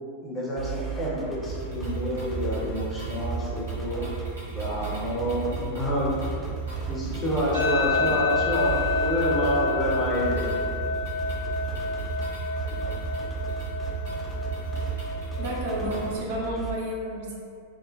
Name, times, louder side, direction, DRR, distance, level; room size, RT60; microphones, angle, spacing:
voice 1, 0.2-4.1 4.5-6.4 6.9-10.5, equal, 25° left, -6 dB, 0.8 m, -28 dB
sound 1, 0.6-16.7, right 5 dB, ahead, 0.4 m, -36 dB
sound 2, 1.5-16.1, right 5 dB, 70° right, 1.1 m, -35 dB
sound 3, 7.5-16.6, left 4 dB, 80° left, 0.4 m, -30 dB
voice 2, 15.4-17.4, equal, 50° right, -3 dB, 0.5 m, -31 dB
3.6 x 2.1 x 2.5 m, 2.3 s
figure-of-eight pair, 90°, 0 cm